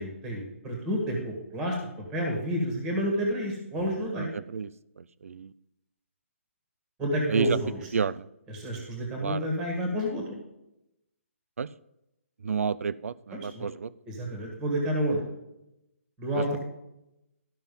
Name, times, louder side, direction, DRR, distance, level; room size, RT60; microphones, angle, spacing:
voice 1, 0.0-1.7 2.1-4.3 7.0-7.9 8.5-10.2 13.3-13.7 14.1-15.2 16.2-16.6, equal, 10° right, 1 dB, 1.6 m, -29 dB
voice 2, 4.2-4.7 5.2-5.5 7.3-7.6 7.9-8.2 9.2-9.5 11.6-11.7 12.4-13.9 16.4-16.6, right 5 dB, 75° right, 19 dB, 0.5 m, -30 dB
12.5 x 5.8 x 5.3 m, 0.86 s
hypercardioid pair, 180°, 8 cm